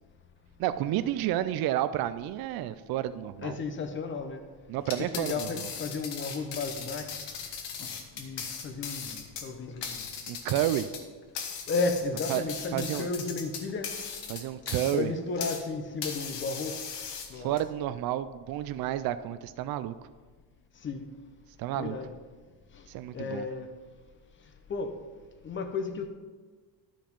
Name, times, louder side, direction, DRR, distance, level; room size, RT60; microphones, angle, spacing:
voice 1, 0.6-3.5 4.7-5.7 10.3-10.9 12.3-12.4 12.7-13.1 14.3-15.1 17.4-19.9 21.6-22.0 22.9-23.5, right 12 dB, 55° right, 12 dB, 0.5 m, -30 dB
voice 2, 3.4-4.4 5.0-7.1 7.8-7.9 8.2-10.1 11.7-13.9 14.9-16.8 17.3-17.6 20.8-21.0 21.7-22.1 22.7-22.8 23.1-23.7 24.7-24.9 25.4-26.1, left 4 dB, 25° left, 7 dB, 0.7 m, -33 dB
sound 1, 4.8-15.7 16.0-17.6, left 6 dB, 65° left, 1.4 m, -38 dB
12.0 x 5.1 x 5.2 m, 1.4 s
cardioid pair, 165°, 44 cm